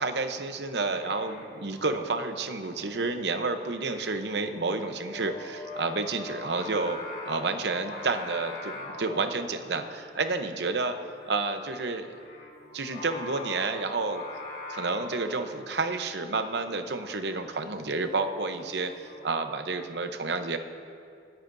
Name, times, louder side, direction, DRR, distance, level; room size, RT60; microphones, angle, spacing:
voice 1, 0.0-7.0 7.2-11.0 11.3-12.1 12.7-14.2 14.7-20.6, right 3 dB, 65° right, 7 dB, 0.9 m, -30 dB
Singing, 0.8-19.3, left 2 dB, 60° left, 3.1 m, -44 dB
28.0 x 10.0 x 2.7 m, 2.3 s
head